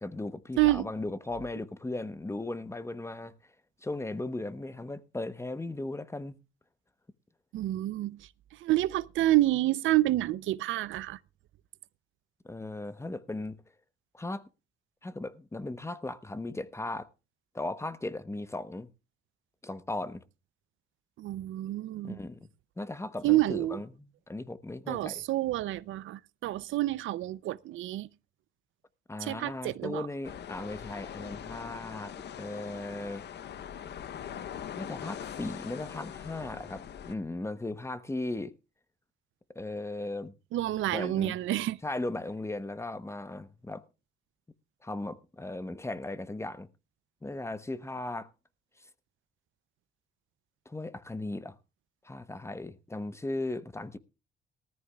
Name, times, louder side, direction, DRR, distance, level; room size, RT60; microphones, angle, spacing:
voice 1, 0.0-3.3 3.8-6.4 12.4-13.6 14.1-14.4 15.0-17.1 17.5-18.9 19.6-20.2 22.0-22.5 22.8-25.2 29.1-33.2 34.8-38.5 39.5-40.3 40.9-41.4 41.8-43.8 44.8-46.7 47.2-48.3 50.7-51.6 52.0-54.0, left 2 dB, 15° left, 0.9 m, -37 dB
voice 2, 0.6-0.9 7.5-8.2 8.6-11.2 21.2-22.2 23.2-23.8 24.9-28.1 29.2-30.1 40.5-41.8, right 16 dB, 80° right, 0.5 m, -28 dB
sound 1, 30.2-37.2, left 9 dB, 60° left, 0.8 m, -42 dB
19.0 x 14.0 x 2.3 m
cardioid pair, 90°, 20 cm